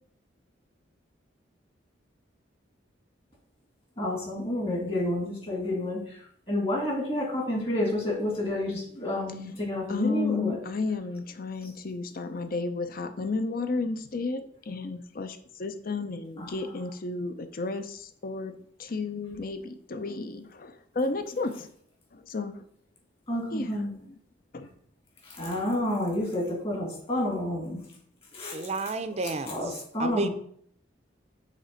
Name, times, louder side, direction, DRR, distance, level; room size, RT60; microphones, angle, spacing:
voice 1, 4.0-10.6 16.4-16.6 23.3-23.9 25.2-27.8 28.3-28.6 29.1-30.3, left 1 dB, 30° left, -1 dB, 2.2 m, -30 dB
voice 2, 9.9-21.7 22.1-22.6 23.5-23.7 24.1-24.2 24.5-24.7, left 3 dB, 50° left, 9 dB, 0.6 m, -32 dB
voice 3, 28.5-29.5 30.0-30.3, right 3 dB, 35° right, 10 dB, 0.5 m, -30 dB
6.6 x 3.2 x 5.1 m, 0.62 s
head